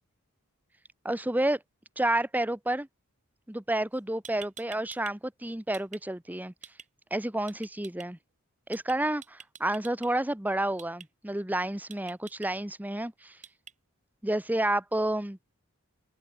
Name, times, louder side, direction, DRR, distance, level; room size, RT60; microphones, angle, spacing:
voice 1, 1.0-1.6 2.0-2.9 3.5-6.5 7.1-8.2 8.7-13.4 14.2-15.4, right 1 dB, 10° right, 0.9 m, -30 dB
sound 1, 3.9-4.0 4.2-5.1 5.4-6.0 6.6-6.9 7.5-8.1 8.7-8.9 9.2-10.1 10.8-11.1 11.9-12.5 13.4-13.7, right 8 dB, 35° right, 3.9 m, -46 dB
open air
head